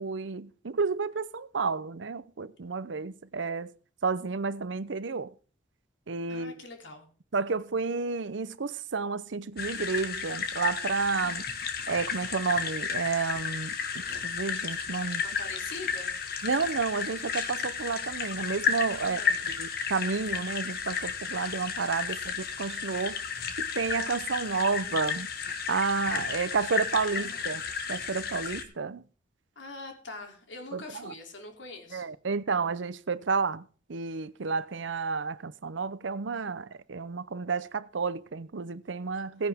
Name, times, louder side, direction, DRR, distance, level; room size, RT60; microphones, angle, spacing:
voice 1, 0.0-3.7 4.0-5.3 6.1-6.5 7.3-11.4 11.9-15.2 16.4-23.2 23.6-25.3 25.7-27.6 27.9-29.0 30.7-31.1 31.9-39.5, right 4 dB, 85° right, 0.7 m, -31 dB
voice 2, 6.3-7.1 11.2-11.5 15.2-16.2 19.0-19.3 22.1-22.4 27.1-27.5 29.5-32.1 39.2-39.3, left 3 dB, 80° left, 3.1 m, -44 dB
sound 1, 9.6-28.6, left 6 dB, 55° left, 1.6 m, -33 dB
16.5 x 10.0 x 3.6 m
head